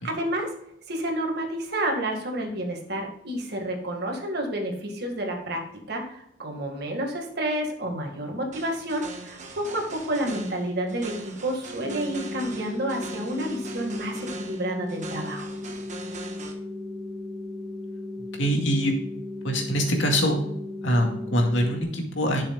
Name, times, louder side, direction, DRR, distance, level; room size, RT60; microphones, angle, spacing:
voice 1, 0.0-0.5 0.9-5.6 5.9-15.5, right 1 dB, 60° right, 2 dB, 1.9 m, -30 dB
sound 1, 8.5-16.5, right 3 dB, 40° right, 1.3 m, -41 dB
sound 2, 11.8-21.8, left 2 dB, 20° right, 0.6 m, -36 dB
voice 2, 18.4-18.9 19.4-20.4 20.8-22.4, equal, 80° left, 2 dB, 2.1 m, -24 dB
11.5 x 6.7 x 2.4 m, 0.77 s
head